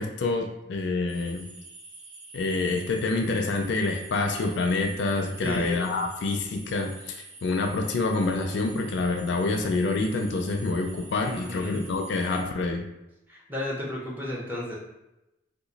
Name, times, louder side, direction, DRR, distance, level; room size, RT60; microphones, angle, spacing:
voice 1, 0.0-1.4 2.3-12.8, left 3 dB, 60° left, 4 dB, 0.4 m, -27 dB
sound 1, 1.1-12.4, right 2 dB, 60° right, 0.7 m, -47 dB
voice 2, 5.4-6.0 11.3-11.8 13.3-14.8, left 1 dB, 10° right, -5 dB, 0.7 m, -33 dB
2.9 x 2.2 x 3.9 m, 0.94 s
head